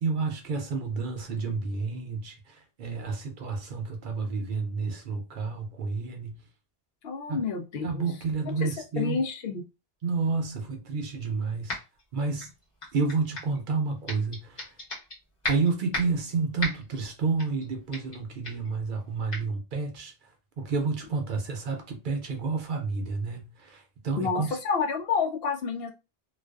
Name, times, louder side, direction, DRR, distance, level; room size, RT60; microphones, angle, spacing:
voice 1, 0.0-6.4 7.3-7.4 7.8-9.2 10.0-11.8 12.1-12.5 12.9-14.6 15.4-20.1 20.6-24.6, right 4 dB, 60° right, 0.7 m, -30 dB
voice 2, 7.0-8.1 8.6-9.6 24.2-25.9, left 5 dB, 75° left, 0.8 m, -29 dB
sound 1, 11.7-12.0 12.4-13.6 14.1-15.2 15.4-16.2 16.6-17.0 17.4-17.6 17.9-18.2 18.4-18.7 19.3-19.4, left 2 dB, 45° left, 1.0 m, -35 dB
2.4 x 2.2 x 2.2 m
omnidirectional pair, 1.0 m